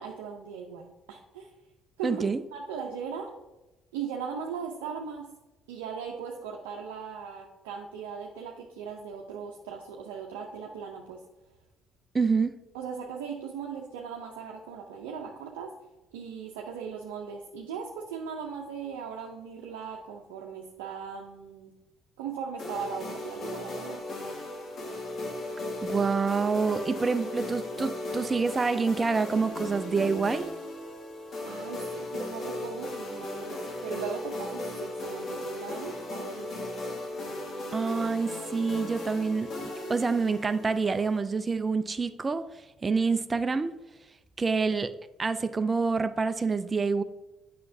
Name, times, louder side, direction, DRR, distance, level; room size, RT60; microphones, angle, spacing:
voice 1, 0.0-1.5 2.0-2.2 2.5-3.3 3.9-5.3 5.7-11.2 12.7-15.7 16.1-21.7 22.2-24.0 31.5-33.6 33.8-36.8, right 6 dB, 90° right, -1 dB, 0.6 m, -38 dB
voice 2, 2.0-2.4 12.1-12.6 25.8-30.5 37.7-42.4 42.8-43.7 44.4-44.9 45.2-47.0, right 4 dB, 30° right, 11 dB, 0.4 m, -27 dB
sound 1, 22.6-41.2, left 1 dB, 55° left, 1.7 m, -37 dB
7.6 x 5.8 x 2.7 m, 1.0 s
supercardioid pair, 65°, 0 cm